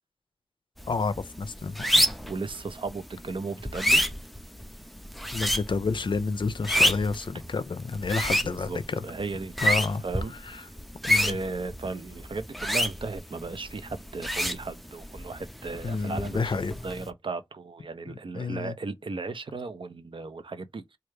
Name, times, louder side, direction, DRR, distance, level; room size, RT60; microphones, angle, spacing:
sound 1, 0.8-17.1, equal, ahead, 0.4 m, -30 dB
voice 1, 0.9-2.1 5.3-9.0 9.6-10.0 10.4-10.6 11.1-11.4 15.8-16.7 18.1-18.7, left 4 dB, 60° left, 0.4 m, -30 dB
voice 2, 2.3-4.0 8.4-10.6 11.1-16.5 16.8-20.8, right 3 dB, 65° right, 0.5 m, -36 dB
3.2 x 2.4 x 3.1 m
wide cardioid pair, 75°, 9 cm